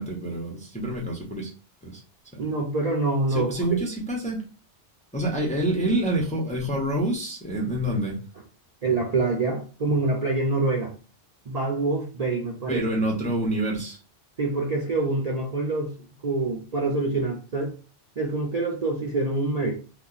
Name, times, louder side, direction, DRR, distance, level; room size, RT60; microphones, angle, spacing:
voice 1, 0.0-1.5 1.8-2.0 2.3-2.5 3.3-4.5 5.1-8.2 12.7-14.0, right 1 dB, 10° left, 0.5 m, -27 dB
voice 2, 2.4-3.5 8.8-10.9 11.5-12.8 14.4-15.9 16.2-17.7 18.2-19.8, right 2 dB, 45° right, 0.5 m, -25 dB
2.8 x 2.3 x 3.8 m
omnidirectional pair, 1.3 m